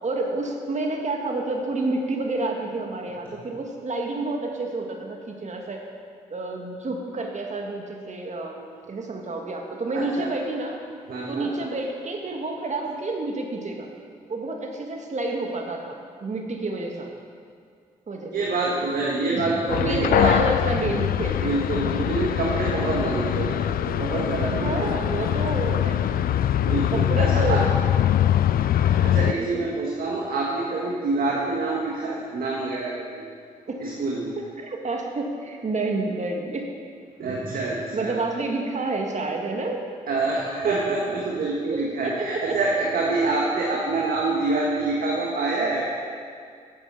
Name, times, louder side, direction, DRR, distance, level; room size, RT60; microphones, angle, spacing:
voice 1, 0.0-5.9 6.3-10.8 11.3-13.9 14.3-17.1 18.1-18.8 19.3-19.4 19.8-21.8 24.6-26.4 26.9-27.7 29.4-29.7 33.7-33.8 34.4-36.7 37.9-39.8 41.7-42.6, right 2 dB, 50° right, 2 dB, 1.9 m, -29 dB
voice 2, 9.9-10.3 11.1-11.5 18.3-20.3 21.4-25.1 26.6-27.6 28.5-33.2 33.8-34.3 37.2-38.2 40.1-45.8, right 3 dB, 70° right, -3 dB, 1.6 m, -26 dB
sound 1, 19.7-29.3, left 11 dB, 70° left, 0.4 m, -23 dB
9.1 x 7.9 x 6.8 m, 2.2 s
supercardioid pair, 50°, 16 cm